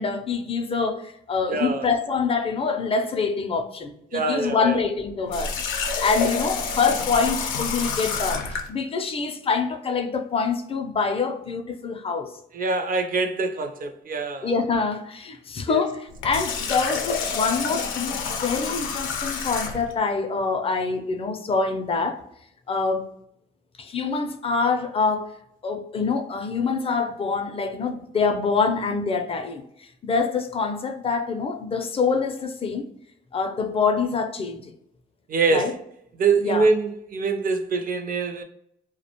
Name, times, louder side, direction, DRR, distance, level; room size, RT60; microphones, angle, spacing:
voice 1, 0.0-5.5 6.0-12.3 14.4-22.2 22.7-23.1 23.8-25.3 25.6-32.9 33.3-34.7 35.5-35.8 36.4-36.7, left 4 dB, 30° left, 0.4 m, -25 dB
voice 2, 1.5-1.9 4.1-4.8 12.5-14.5 15.7-15.8 35.3-35.8 36.2-38.4, right 4 dB, 45° right, 0.5 m, -24 dB
Water tap faucet, 5.3-8.7 16.1-19.9, left 5 dB, 85° left, 0.5 m, -28 dB
2.3 x 2.1 x 2.8 m
cardioid pair, 90°, 20 cm